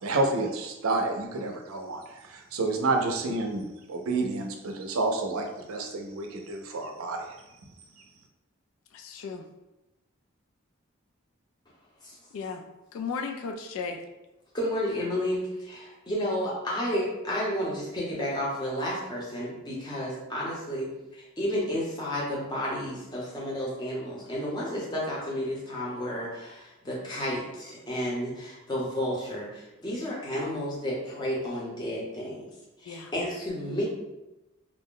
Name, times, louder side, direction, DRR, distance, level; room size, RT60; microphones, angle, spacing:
voice 1, 0.0-7.2, right 2 dB, 85° right, 3 dB, 0.5 m, -29 dB
voice 2, 8.9-9.4 12.3-12.6 12.9-14.0 32.9-33.1, left 5 dB, 80° left, 5 dB, 0.3 m, -35 dB
voice 3, 14.5-32.5 32.8-33.8, equal, 20° left, -5 dB, 0.7 m, -31 dB
2.4 x 2.1 x 3.6 m, 0.98 s
head